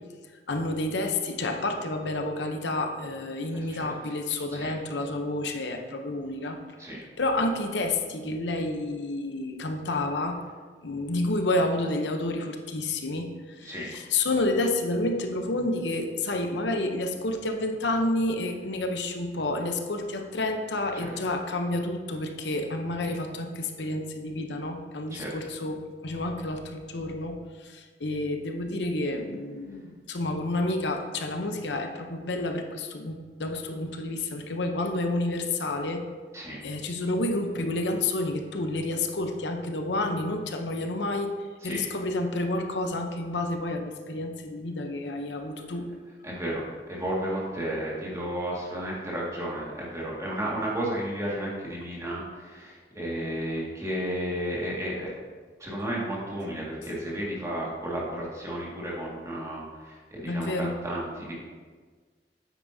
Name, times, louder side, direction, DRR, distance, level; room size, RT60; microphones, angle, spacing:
voice 1, 0.5-6.6 7.2-10.4 10.8-36.0 36.6-41.4 41.6-45.9 60.2-60.8, left 2 dB, 80° left, 4 dB, 0.8 m, -29 dB
voice 2, 13.6-13.9 20.9-21.1 25.1-25.3 36.3-36.6 41.6-41.8 46.2-55.1 55.6-61.3, right 1 dB, 20° right, -5 dB, 1.9 m, -33 dB
9.2 x 8.4 x 2.7 m, 1.5 s
head